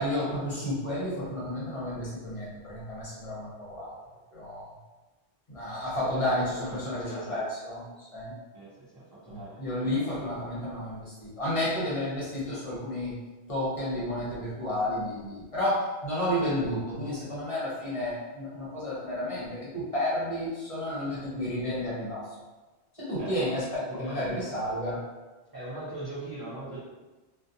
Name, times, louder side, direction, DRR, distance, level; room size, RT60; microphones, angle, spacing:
voice 1, 0.0-3.9 4.3-4.7 5.5-8.3 9.3-13.1 13.5-22.3 23.0-25.0, left 1 dB, 35° left, -8 dB, 0.8 m, -31 dB
voice 2, 5.7-7.4 8.5-10.1 23.2-23.5 23.9-24.5 25.5-26.8, right 2 dB, 25° right, -11 dB, 0.5 m, -41 dB
2.4 x 2.2 x 2.7 m, 1.2 s
omnidirectional pair, 1.2 m